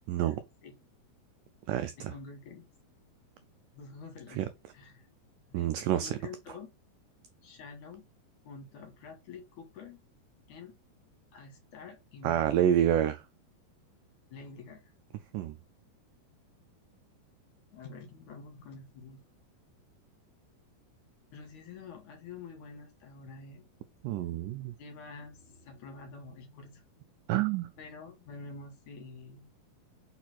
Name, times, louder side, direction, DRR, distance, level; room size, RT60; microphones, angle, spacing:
voice 1, 0.1-0.4 1.7-2.1 4.3-4.5 5.5-6.2 12.2-13.2 15.3-15.6 24.0-24.7 27.3-27.7, right 11 dB, 90° right, 1.9 m, -28 dB
voice 2, 2.0-2.7 3.8-4.5 4.7-5.1 5.5-5.7 6.0-6.7 7.4-8.0 8.5-10.0 10.5-10.8 11.3-12.5 14.3-14.9 17.7-19.2 21.3-23.7 24.8-26.8 27.8-29.5, left 4 dB, 60° left, 2.6 m, -47 dB
5.7 x 4.2 x 6.1 m
omnidirectional pair, 4.5 m